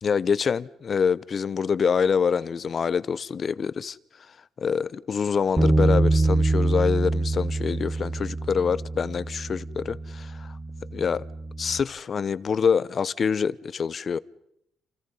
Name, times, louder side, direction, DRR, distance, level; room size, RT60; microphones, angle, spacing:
voice 1, 0.0-4.0 4.6-10.6 10.9-11.3 11.6-14.2, left 6 dB, 45° left, 0.9 m, -26 dB
Bass guitar, 5.6-11.8, right 2 dB, 15° right, 1.3 m, -25 dB
28.5 x 28.0 x 5.6 m
cardioid pair, 90°, 0 cm